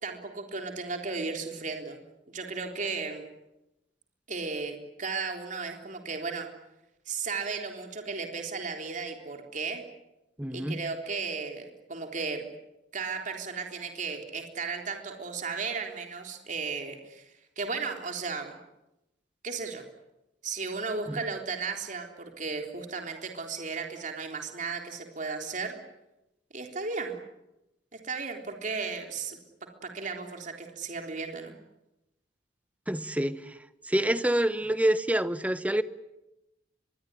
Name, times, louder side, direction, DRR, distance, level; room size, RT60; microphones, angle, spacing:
voice 1, 0.0-2.0 2.3-3.3 4.3-6.5 7.1-9.8 10.5-12.5 12.9-18.6 19.4-19.8 20.4-25.8 26.5-27.2 27.9-29.4 29.8-31.5, right 4 dB, 45° right, 3.7 m, -35 dB
voice 2, 10.4-10.8 21.1-21.2 32.9-33.5 33.9-35.8, right 1 dB, 10° right, 1.0 m, -27 dB
24.5 x 22.5 x 9.9 m
head